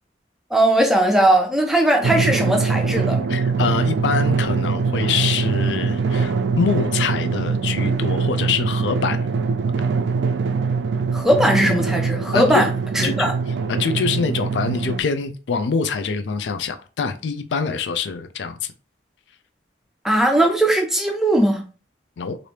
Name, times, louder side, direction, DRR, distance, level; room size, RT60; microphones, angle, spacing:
voice 1, 0.5-3.2 11.1-12.7 12.9-13.3 20.0-21.6, right 1 dB, ahead, 0.6 m, -18 dB
Drum, 2.0-15.0, right 5 dB, 75° right, 0.3 m, -22 dB
voice 2, 3.3-9.3 12.3-12.6 13.0-13.2 13.7-18.6 22.2-22.4, left 5 dB, 90° left, 0.4 m, -24 dB
3.2 x 2.6 x 2.8 m
head